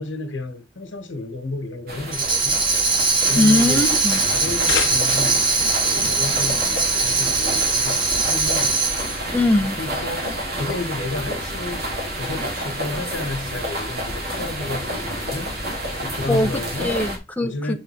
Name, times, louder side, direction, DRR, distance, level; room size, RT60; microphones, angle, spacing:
voice 1, 0.0-2.6 3.3-3.9 4.3-5.5 5.8-8.8 9.8-10.2 10.6-11.9 12.2-15.6 16.0-17.1 17.4-17.8, left 2 dB, 85° left, 1.4 m, -31 dB
sound 1, 1.9-17.2, equal, 55° right, 2.1 m, -29 dB
Tambourine, 2.1-9.2, right 3 dB, 25° right, 1.2 m, -21 dB
voice 2, 3.4-4.2 9.3-9.8 16.3-16.5 16.8-17.7, left 1 dB, 10° left, 0.6 m, -20 dB
sound 2, 4.4-5.5, left 8 dB, 65° left, 0.9 m, -28 dB
7.7 x 3.7 x 4.4 m
head